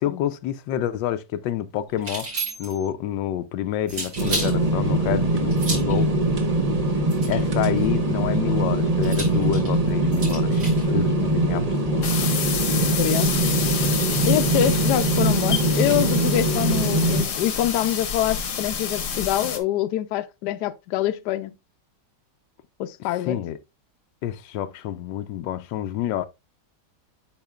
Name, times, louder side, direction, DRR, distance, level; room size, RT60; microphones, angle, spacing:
voice 1, 0.0-2.3 2.6-6.1 7.3-12.1 23.3-23.6 24.2-26.3, left 11 dB, 90° left, 1.3 m, -28 dB
sound 1, 2.0-2.9 3.9-4.6 5.5-6.0 7.1-7.9 9.0-10.8, right 2 dB, 65° right, 4.5 m, -32 dB
sound 2, 4.2-17.2, right 2 dB, 30° right, 0.8 m, -22 dB
sound 3, 12.0-19.6, left 7 dB, 50° left, 1.2 m, -28 dB
voice 2, 12.8-13.3 14.3-21.5 22.8-23.4, left 12 dB, 75° left, 1.1 m, -25 dB
8.7 x 5.7 x 2.3 m
omnidirectional pair, 1.9 m